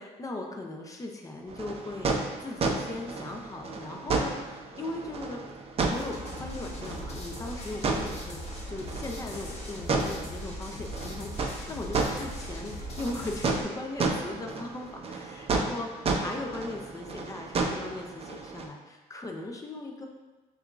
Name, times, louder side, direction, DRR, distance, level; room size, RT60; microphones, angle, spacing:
voice 1, 0.0-2.1 2.4-5.4 5.9-15.9 16.1-20.1, left 2 dB, 20° left, 1 dB, 0.6 m, -38 dB
sound 1, 1.5-18.7, right 3 dB, 35° right, 0.5 m, -33 dB
sound 2, 5.9-13.6, left 1 dB, 40° left, 1.0 m, -40 dB
6.9 x 2.4 x 2.5 m, 1.2 s
cardioid pair, 110°, 17 cm